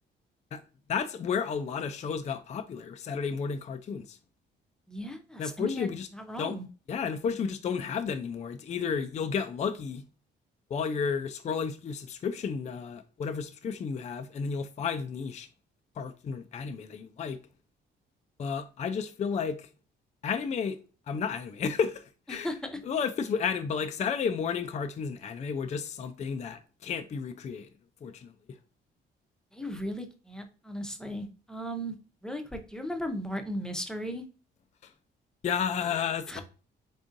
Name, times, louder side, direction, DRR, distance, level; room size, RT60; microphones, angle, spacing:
voice 1, 0.9-4.2 5.4-6.1 6.4-6.6 6.9-10.0 10.7-15.5 16.0-17.4 18.4-19.7 20.2-20.8 21.1-22.5 22.9-27.7 28.0-28.3 34.8-34.9 35.4-36.4, left 6 dB, 35° left, 0.4 m, -32 dB
voice 2, 4.9-6.7 22.3-22.8 29.5-31.9 32.2-34.2 36.3-36.4, equal, 5° left, 0.7 m, -36 dB
3.8 x 3.5 x 2.5 m
cardioid pair, 90°, 20 cm